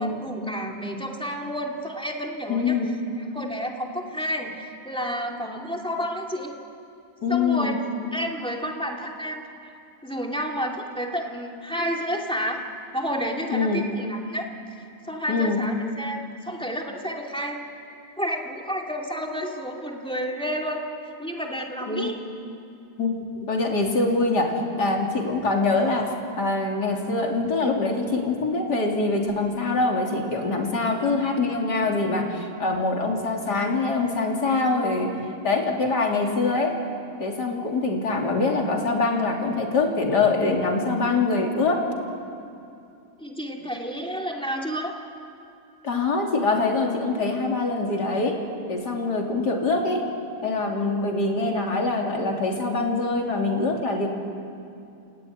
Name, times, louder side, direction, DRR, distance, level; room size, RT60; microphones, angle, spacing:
voice 1, 0.0-2.8 3.3-6.5 7.3-7.7 8.1-9.7 10.0-12.6 12.9-14.5 15.1-17.6 18.2-20.8 21.2-22.2 43.2-44.9, equal, 5° left, 0 dB, 2.6 m, -30 dB
voice 2, 2.5-2.9 7.2-7.8 13.5-13.8 15.3-15.6 21.9-22.2 23.0-35.1 35.4-36.7 37.2-41.9 45.8-48.4 48.7-50.1 50.4-54.1, left 3 dB, 80° left, 0 dB, 3.6 m, -24 dB
29.5 x 17.0 x 9.5 m, 2.5 s
omnidirectional pair, 1.8 m